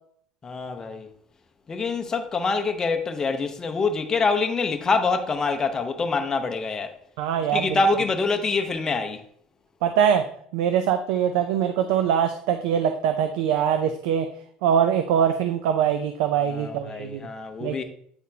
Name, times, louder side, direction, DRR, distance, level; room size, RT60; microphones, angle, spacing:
voice 1, 0.4-1.1 1.7-6.9 7.5-9.2 16.5-17.8, left 4 dB, 20° left, 0.7 m, -25 dB
voice 2, 7.2-7.8 9.8-14.3 14.6-17.2 17.6-17.8, right 8 dB, 90° right, 0.4 m, -23 dB
8.7 x 4.1 x 2.7 m
cardioid pair, 145°, 3 cm